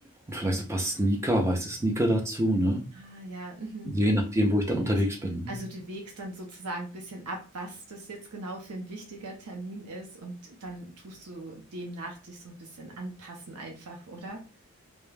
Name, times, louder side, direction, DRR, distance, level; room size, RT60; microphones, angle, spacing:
voice 1, 0.3-2.8 3.8-5.5, equal, 10° right, 2 dB, 0.5 m, -26 dB
voice 2, 2.9-4.0 4.9-5.0 5.5-14.4, right 2 dB, 90° right, 1 dB, 0.6 m, -40 dB
2.3 x 2.1 x 3.1 m, 0.33 s
head